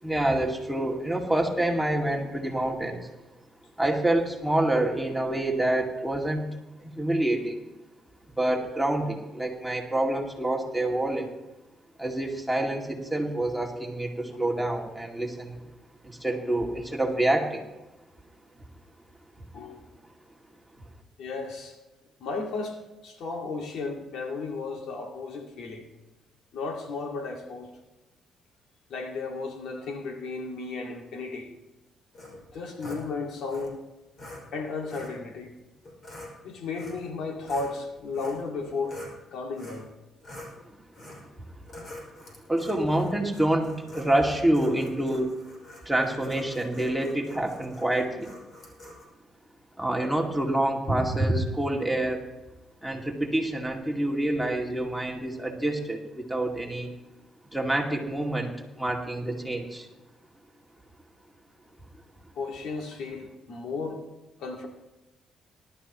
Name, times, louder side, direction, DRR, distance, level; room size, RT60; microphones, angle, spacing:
voice 1, 0.0-3.1 3.8-6.5 6.8-7.6 8.4-11.3 12.0-15.6 16.0-17.7 19.4-19.5 41.4-41.6 42.5-45.3 45.9-48.3 49.8-52.2 52.8-56.9 57.5-58.5 58.8-59.9, right 1 dB, ahead, -1 dB, 2.3 m, -27 dB
voice 2, 21.2-21.8 22.2-22.8 23.0-25.9 26.5-27.7 28.9-31.5 32.5-33.8 34.5-35.5 36.4-39.0 39.3-39.9 62.4-64.0 64.4-64.7, left 4 dB, 75° left, 2 dB, 2.1 m, -34 dB
sound 1, 32.1-33.0 33.5-33.7 34.2-34.4 34.9-35.2 35.8-36.3 36.7-37.1 37.4-39.2 39.6-39.9 40.2-40.5 40.9-41.3 41.7-49.1, left 1 dB, 45° left, 5.5 m, -45 dB
19.5 x 12.5 x 3.1 m, 1.1 s
cardioid pair, 90°, 0 cm